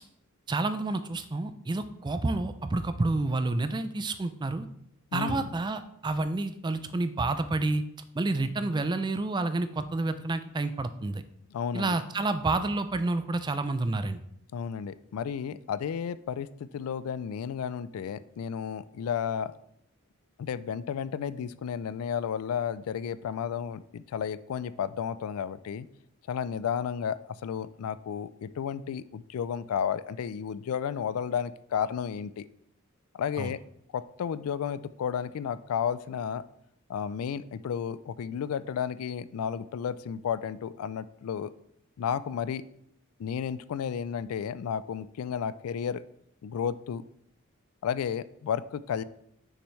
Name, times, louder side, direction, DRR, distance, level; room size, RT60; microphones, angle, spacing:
voice 1, 0.5-4.7 5.1-7.8 8.1-11.2 11.7-14.2 33.4-33.5, right 2 dB, 20° right, 11 dB, 0.3 m, -29 dB
voice 2, 5.1-5.5 11.5-12.0 14.5-19.5 20.4-25.9 26.3-32.5 33.2-33.6 33.9-36.4 36.9-41.5 42.0-42.6 43.2-46.0 46.4-47.0 47.8-49.0, left 7 dB, 80° left, 16 dB, 0.3 m, -32 dB
6.5 x 6.1 x 3.1 m, 0.73 s
head